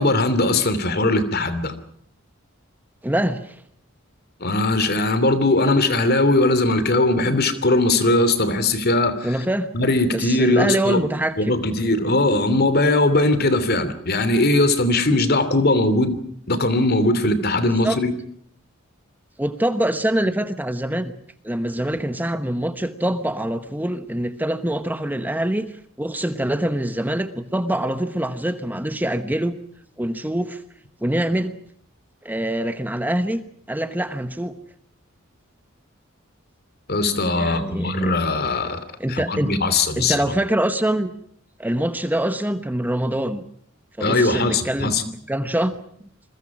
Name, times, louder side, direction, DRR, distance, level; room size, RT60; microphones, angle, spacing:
voice 1, 0.0-1.7 4.4-9.4 9.7-11.0 11.4-16.2 16.5-18.1 36.9-40.3 44.0-45.0, left 2 dB, 50° left, 13 dB, 2.8 m, -20 dB
voice 2, 3.0-3.6 9.2-9.7 10.1-11.5 17.6-18.0 19.4-21.1 21.4-29.6 30.0-30.6 31.0-31.5 32.2-33.4 33.7-34.5 37.4-38.1 39.0-39.5 40.0-41.1 41.6-43.4 44.0-45.7, right 1 dB, 10° right, 10 dB, 1.0 m, -24 dB
28.0 x 22.0 x 6.1 m, 0.64 s
head